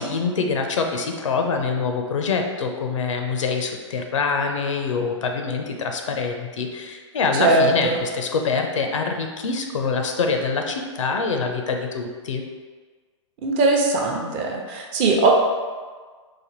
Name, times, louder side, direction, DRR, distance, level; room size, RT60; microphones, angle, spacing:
voice 1, 0.0-12.4, left 4 dB, 75° left, 4 dB, 0.5 m, -25 dB
voice 2, 7.4-8.0 13.4-15.3, right 3 dB, 35° right, 0 dB, 0.7 m, -20 dB
4.0 x 2.5 x 3.0 m, 1.5 s
hypercardioid pair, 110°, 16 cm